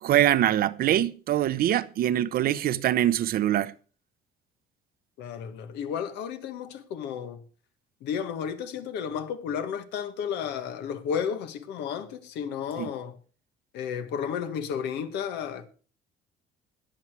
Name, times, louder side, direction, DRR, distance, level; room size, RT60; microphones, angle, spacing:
voice 1, 0.0-3.7 12.8-12.9, right 12 dB, 65° right, 0.8 m, -24 dB
voice 2, 5.2-7.4 8.0-13.2 13.7-15.7, left 7 dB, 85° left, 1.6 m, -32 dB
20.5 x 7.2 x 4.7 m
cardioid pair, 110°, 17 cm